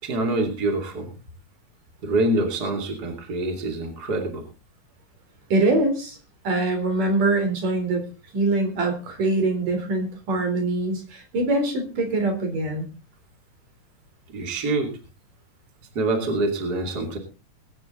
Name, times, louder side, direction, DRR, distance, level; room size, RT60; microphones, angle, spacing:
voice 1, 0.0-1.1 2.0-4.5 14.3-15.0 15.9-17.2, right 2 dB, 30° right, 3 dB, 3.1 m, -25 dB
voice 2, 5.5-6.2 6.4-8.0 8.3-12.9, right 2 dB, 70° right, 4 dB, 5.4 m, -23 dB
21.0 x 9.6 x 3.9 m, 0.32 s
omnidirectional pair, 3.9 m